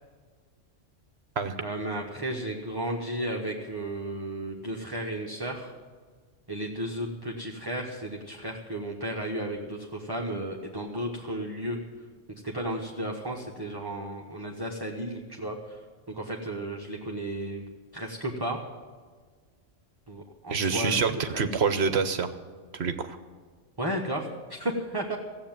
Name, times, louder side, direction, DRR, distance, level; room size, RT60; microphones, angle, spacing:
voice 1, 1.6-5.7 6.5-11.8 12.4-15.8 16.1-17.6 17.9-18.6 20.1-21.5 23.8-25.2, right 1 dB, 20° right, -1 dB, 1.2 m, -33 dB
voice 2, 20.5-22.3 22.7-23.2, right 5 dB, 60° right, 9 dB, 1.1 m, -26 dB
16.0 x 8.0 x 9.0 m, 1.5 s
omnidirectional pair, 1.3 m